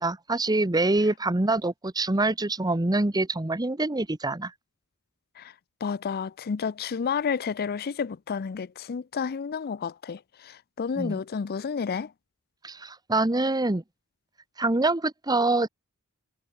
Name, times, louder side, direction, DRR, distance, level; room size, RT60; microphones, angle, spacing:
voice 1, 0.0-4.5 11.0-11.2 12.6-13.8 14.6-15.7, right 2 dB, 20° right, 1.0 m, -25 dB
voice 2, 5.8-12.1, left 6 dB, 45° left, 0.4 m, -31 dB
head